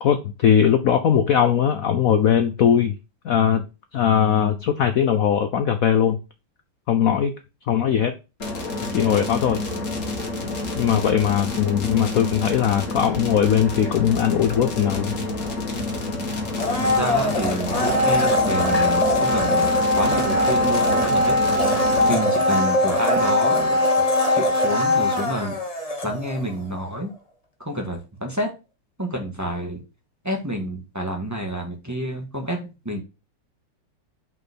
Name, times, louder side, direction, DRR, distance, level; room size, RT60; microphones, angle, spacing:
voice 1, 0.0-3.0 3.2-3.7 3.9-6.2 6.9-7.3 7.7-8.2 8.9-9.7 10.8-15.2, left 8 dB, 70° left, 0.8 m, -20 dB
sound 1, 8.4-22.1, left 2 dB, 40° left, 2.1 m, -29 dB
Domestic sounds home sounds, 16.5-26.5 26.8-26.9, left 1 dB, 20° left, 1.1 m, -21 dB
voice 2, 16.8-19.7 20.0-21.5 22.1-23.8 24.2-25.6 26.0-27.1 27.6-28.5 29.0-29.8 30.2-33.0, equal, 10° right, 1.6 m, -28 dB
5.7 x 5.4 x 6.2 m
omnidirectional pair, 2.3 m